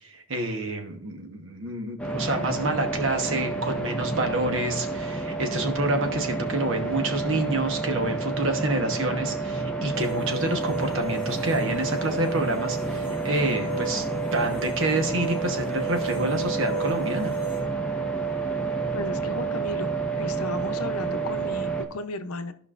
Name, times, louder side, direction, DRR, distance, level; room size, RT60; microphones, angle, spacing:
voice 1, 0.0-14.1 14.3-17.3, right 2 dB, 60° right, 4 dB, 1.1 m, -28 dB
sound 1, 2.0-21.8, right 3 dB, 5° left, 0.7 m, -29 dB
sound 2, 9.9-17.6, right 2 dB, 25° right, 3.4 m, -36 dB
voice 2, 18.9-19.9 20.2-22.5, left 2 dB, 85° left, 9 dB, 0.7 m, -34 dB
14.0 x 5.3 x 2.5 m, 0.63 s
head